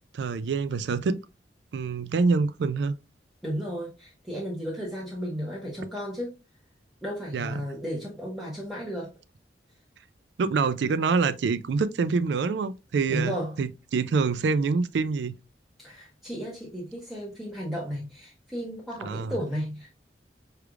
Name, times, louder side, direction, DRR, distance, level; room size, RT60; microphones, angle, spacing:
voice 1, 0.1-1.2 1.7-2.9 7.3-7.6 10.4-15.4 19.0-19.3, right 4 dB, 70° right, 0.3 m, -26 dB
voice 2, 3.4-6.4 7.0-9.1 13.1-13.5 15.8-19.9, equal, ahead, 0.8 m, -34 dB
4.7 x 3.3 x 2.3 m
head